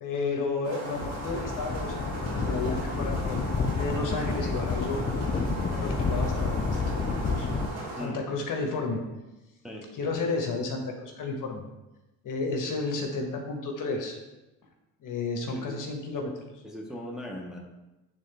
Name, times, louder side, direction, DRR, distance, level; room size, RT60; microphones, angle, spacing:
voice 1, 0.0-3.4 3.8-5.0 5.7-7.5 8.0-9.0 10.0-11.6 12.2-14.2 15.0-16.3, left 3 dB, 50° left, 2 dB, 1.3 m, -32 dB
sound 1, 0.6-8.0, right 2 dB, 75° right, 1.8 m, -37 dB
sound 2, 1.0-7.7, left 4 dB, 20° left, 0.4 m, -30 dB
voice 2, 16.6-17.6, equal, ahead, -2 dB, 1.1 m, -39 dB
8.8 x 3.8 x 3.4 m, 1.0 s
cardioid pair, 95°, 40 cm